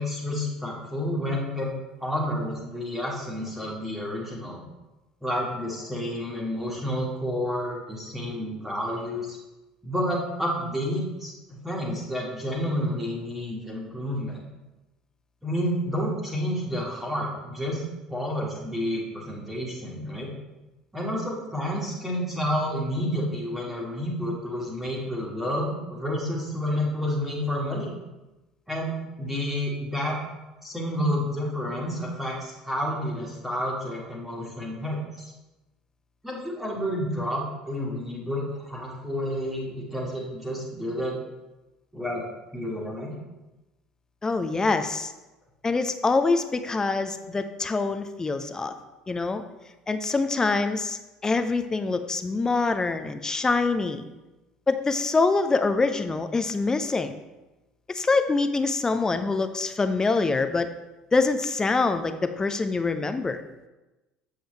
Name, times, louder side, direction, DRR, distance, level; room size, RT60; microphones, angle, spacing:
voice 1, 0.0-1.7 2.0-4.6 5.2-9.4 9.8-14.4 15.4-17.8 18.1-20.3 20.9-28.0 28.7-30.2 30.6-35.3 36.2-41.2 41.9-42.3 42.5-43.1, equal, 5° right, -3 dB, 1.6 m, -30 dB
voice 2, 44.2-45.1 45.6-48.7 49.1-49.4 49.9-54.0 54.7-57.2 57.9-60.7 61.1-63.4, left 3 dB, 20° left, 9 dB, 0.6 m, -25 dB
7.8 x 6.4 x 3.3 m, 1.1 s
figure-of-eight pair, 60°, 3 cm